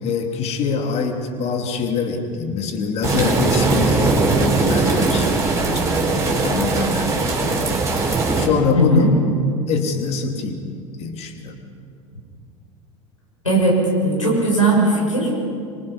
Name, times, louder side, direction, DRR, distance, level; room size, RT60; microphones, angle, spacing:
voice 1, 0.0-7.8 8.4-9.1 9.7-10.7 11.0-11.6, left 5 dB, 40° left, 4 dB, 2.9 m, -24 dB
sound 1, 3.0-8.5, right 3 dB, 20° right, 4.7 m, -19 dB
voice 2, 8.7-9.1 13.4-15.3, right 2 dB, 85° left, -4 dB, 6.2 m, -18 dB
25.0 x 24.5 x 5.6 m, 2.4 s
figure-of-eight pair, 75°, 16 cm